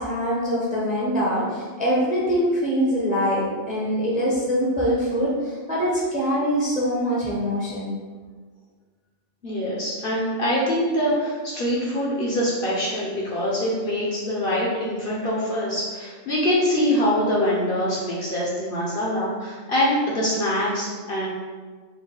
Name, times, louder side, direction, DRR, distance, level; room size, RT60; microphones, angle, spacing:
voice 1, 0.0-7.9, equal, 10° right, -6 dB, 0.6 m, -23 dB
voice 2, 9.4-21.3, equal, 50° left, -5 dB, 0.8 m, -24 dB
4.4 x 2.2 x 3.8 m, 1.5 s
omnidirectional pair, 1.4 m